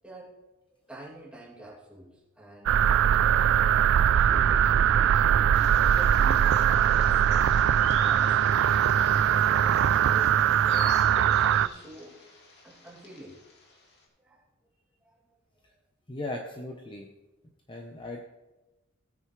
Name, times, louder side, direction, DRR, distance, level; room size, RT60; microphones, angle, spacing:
voice 1, 0.0-0.3 0.9-2.8 3.2-7.5 7.8-8.9 9.2-10.9 11.4-12.2 12.6-13.4 14.2-14.4 15.0-15.2, right 1 dB, 5° right, -5 dB, 2.6 m, -46 dB
sound 1, 2.7-11.7, right 9 dB, 60° right, 0.3 m, -21 dB
sound 2, 5.5-14.0, left 3 dB, 50° left, 2.4 m, -46 dB
voice 2, 16.1-17.1 17.7-18.3, left 2 dB, 25° left, 2 dB, 0.8 m, -37 dB
16.5 x 9.2 x 3.2 m, 1.1 s
head